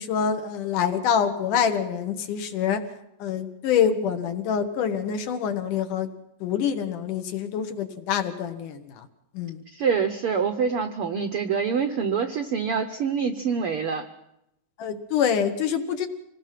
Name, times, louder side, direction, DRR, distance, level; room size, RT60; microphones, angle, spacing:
voice 1, 0.0-2.8 3.2-6.1 6.4-9.1 9.3-9.6 14.8-16.1, left 8 dB, 70° left, 7 dB, 2.7 m, -26 dB
voice 2, 9.7-14.0, right 6 dB, 85° right, 6 dB, 1.2 m, -26 dB
26.0 x 19.0 x 5.9 m, 0.85 s
omnidirectional pair, 3.9 m